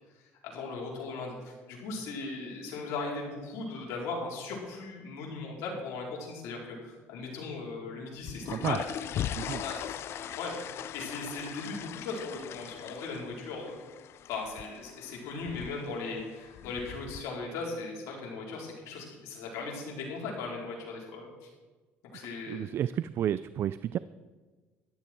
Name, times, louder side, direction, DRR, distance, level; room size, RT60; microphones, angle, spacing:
voice 1, 0.4-8.8 9.4-10.5 10.9-13.8 14.3-21.5 22.1-22.7, left 3 dB, 75° left, -2 dB, 4.3 m, -38 dB
sound 1, 8.1-17.2, left 10 dB, 60° left, 0.5 m, -40 dB
voice 2, 8.4-8.8 9.4-9.6 22.5-24.0, right 10 dB, 55° right, 15 dB, 0.4 m, -31 dB
14.0 x 11.5 x 4.6 m, 1.3 s
supercardioid pair, 90°, 5 cm